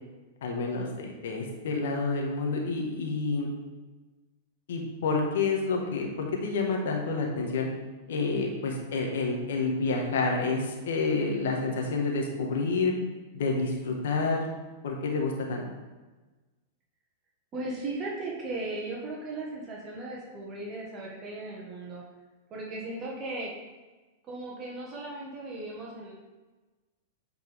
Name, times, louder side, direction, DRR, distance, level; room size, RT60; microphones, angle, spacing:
voice 1, 0.4-3.5 4.7-7.7 8.1-12.9 13.3-14.5 14.8-15.6, left 3 dB, 75° left, 1 dB, 1.5 m, -29 dB
voice 2, 17.5-22.0 22.5-23.5 24.3-26.1, right 2 dB, 30° right, -3 dB, 1.6 m, -37 dB
8.5 x 4.5 x 3.6 m, 1.2 s
hypercardioid pair, 120°, 0 cm